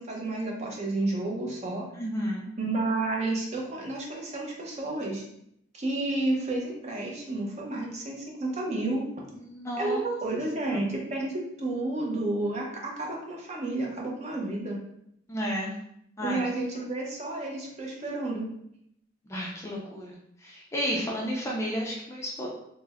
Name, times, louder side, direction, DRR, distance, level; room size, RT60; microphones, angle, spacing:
voice 1, 0.0-1.8 2.6-5.2 5.7-9.0 9.8-11.3 11.6-14.8 16.2-18.5, right 2 dB, 35° right, -1 dB, 0.6 m, -31 dB
voice 2, 2.0-2.5 9.3-10.0 15.3-15.7 16.2-16.4 19.3-22.5, equal, 15° left, -3 dB, 0.4 m, -32 dB
3.2 x 2.0 x 3.4 m, 0.75 s
head